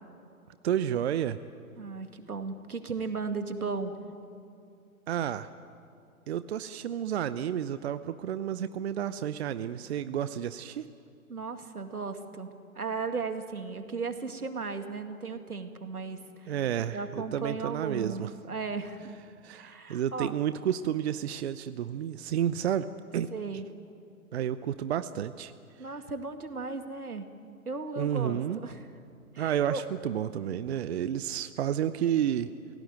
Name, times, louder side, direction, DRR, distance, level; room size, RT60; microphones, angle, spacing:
voice 1, 0.6-1.4 5.1-5.5 6.3-10.8 16.5-18.3 19.4-23.3 24.3-25.5 28.0-28.6 29.4-32.5, right 10 dB, 45° right, 13 dB, 0.7 m, -31 dB
voice 2, 1.8-4.0 11.3-16.5 16.9-19.1 19.5-20.3 23.3-23.7 25.8-27.3 27.7-28.9 29.3-29.8, right 4 dB, 85° right, 7 dB, 2.3 m, -36 dB
30.0 x 17.0 x 9.3 m, 2.5 s
figure-of-eight pair, 125°, 44 cm